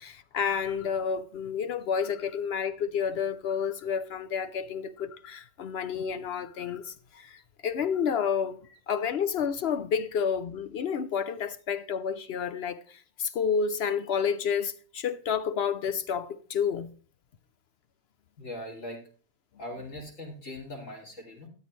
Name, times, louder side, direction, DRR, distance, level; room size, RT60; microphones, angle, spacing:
voice 1, 0.0-8.6 8.9-16.9, left 7 dB, 65° left, 0.6 m, -30 dB
voice 2, 18.4-19.0 19.6-21.5, left 1 dB, 50° left, 3.2 m, -40 dB
13.0 x 9.4 x 3.1 m
omnidirectional pair, 1.7 m